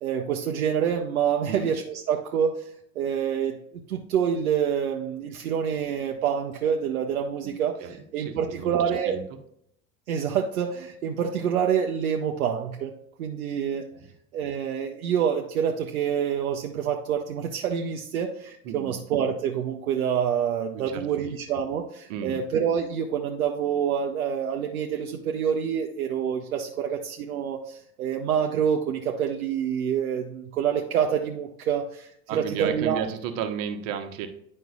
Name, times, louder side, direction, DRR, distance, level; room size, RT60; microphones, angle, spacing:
voice 1, 0.0-2.7 3.0-7.8 8.1-9.2 10.1-12.9 13.2-13.8 14.3-33.0, right 8 dB, 80° right, 2 dB, 0.7 m, -27 dB
voice 2, 1.5-1.8 7.4-7.5 7.8-9.2 13.9-14.0 18.6-18.9 20.7-21.4 22.1-22.4 32.3-34.3, right 8 dB, 60° right, 7 dB, 1.1 m, -34 dB
9.1 x 5.3 x 2.4 m, 0.72 s
hypercardioid pair, 80°, 42 cm